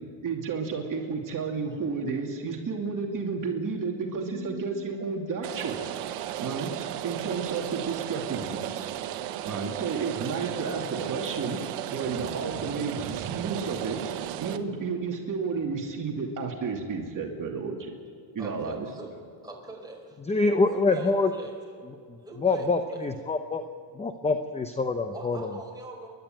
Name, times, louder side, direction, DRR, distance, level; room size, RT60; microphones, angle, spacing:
voice 1, 0.2-5.7 6.4-8.9 9.4-11.6 11.9-14.1 14.4-17.9 18.3-18.9, right 5 dB, 40° right, 0 dB, 2.7 m, -32 dB
Rain, 5.4-14.6, right 12 dB, 80° right, 1.3 m, -35 dB
voice 2, 18.4-19.1 19.4-21.6 22.2-23.1 25.1-26.1, right 2 dB, 10° right, -1 dB, 5.0 m, -43 dB
voice 3, 20.3-21.3 22.4-23.6 24.0-25.4, left 3 dB, 15° left, 7 dB, 0.8 m, -25 dB
29.0 x 12.0 x 9.1 m, 2.3 s
cardioid pair, 125°, 50 cm